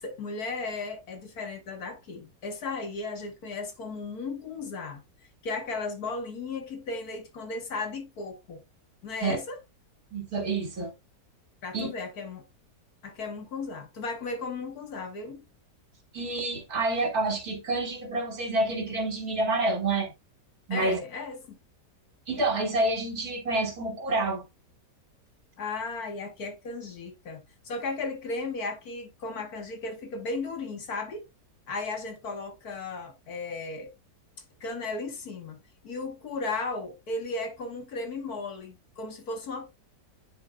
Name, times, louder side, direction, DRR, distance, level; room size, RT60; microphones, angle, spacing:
voice 1, 0.0-5.0 5.4-8.6 9.0-9.6 11.6-12.5 13.0-15.5 20.7-21.6 25.6-31.3 31.7-33.9 34.6-35.6 35.8-39.7, left 3 dB, 60° left, 1.7 m, -35 dB
voice 2, 10.1-10.9 11.7-11.9 16.1-20.1 20.7-21.0 22.3-24.4, right 2 dB, 55° right, 2.7 m, -28 dB
9.6 x 4.6 x 2.2 m
omnidirectional pair, 1.9 m